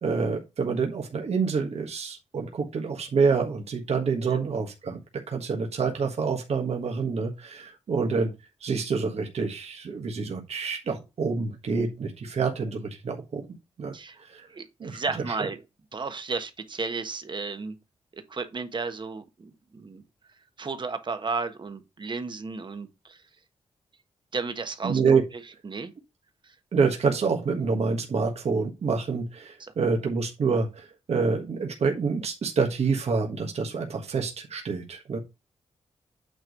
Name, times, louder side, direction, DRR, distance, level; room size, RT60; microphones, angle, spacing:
voice 1, 0.0-5.0 5.3-8.3 8.6-13.5 13.8-13.9 14.3-14.4 14.8-15.0 24.8-25.2 26.7-35.2, right 5 dB, 65° right, 1.5 m, -27 dB
voice 2, 13.9-14.2 14.5-15.6 15.9-17.7 18.1-20.0 20.6-23.2 24.3-25.0 25.3-25.9 26.4-26.5 29.6-29.7, right 4 dB, 45° right, 1.3 m, -33 dB
8.9 x 3.2 x 5.2 m
cardioid pair, 80°, 11 cm